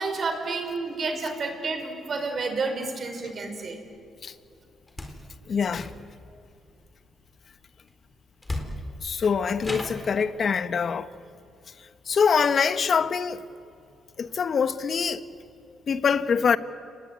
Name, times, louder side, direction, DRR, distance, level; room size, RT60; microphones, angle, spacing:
voice 1, 0.0-3.8, right 3 dB, 45° right, 5.0 m, -30 dB
sound 1, 4.9-5.2 5.7-6.3 7.9-8.0 8.4-9.0 9.6-10.1, left 1 dB, 20° left, 4.2 m, -34 dB
voice 2, 5.5-5.9 9.0-11.1 12.1-13.4 14.2-15.2 15.9-16.6, left 6 dB, 50° left, 1.2 m, -24 dB
30.0 x 19.5 x 9.5 m
cardioid pair, 90°, 0 cm